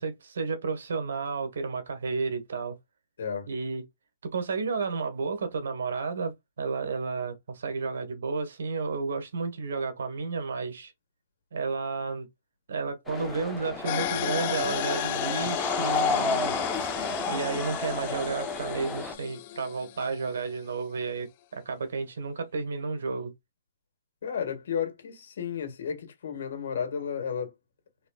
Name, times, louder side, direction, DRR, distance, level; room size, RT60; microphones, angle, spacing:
voice 1, 0.0-2.7 3.5-3.8 4.3-10.9 11.5-12.3 12.7-16.6 17.3-21.3 21.5-23.3, right 4 dB, 75° right, 1.4 m, -32 dB
voice 2, 3.2-3.5 24.2-27.5, left 7 dB, 70° left, 1.9 m, -32 dB
sound 1, 13.1-19.1, left 3 dB, 10° left, 0.9 m, -31 dB
sound 2, 13.9-20.5, left 13 dB, 40° left, 0.4 m, -34 dB
4.1 x 3.1 x 2.4 m
hypercardioid pair, 150°, 0 cm